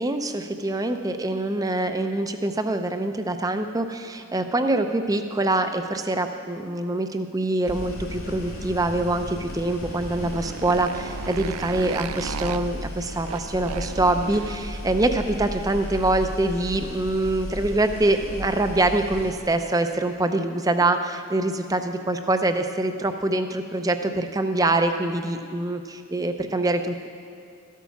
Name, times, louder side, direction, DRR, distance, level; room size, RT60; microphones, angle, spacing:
voice 1, 0.0-27.1, right 2 dB, 15° right, 8 dB, 0.5 m, -24 dB
sound 1, 7.6-19.3, equal, 85° left, 2.2 m, -35 dB
Motorcycle, 9.7-16.3, right 7 dB, 90° right, 0.4 m, -38 dB
13.5 x 8.4 x 5.8 m, 2.3 s
head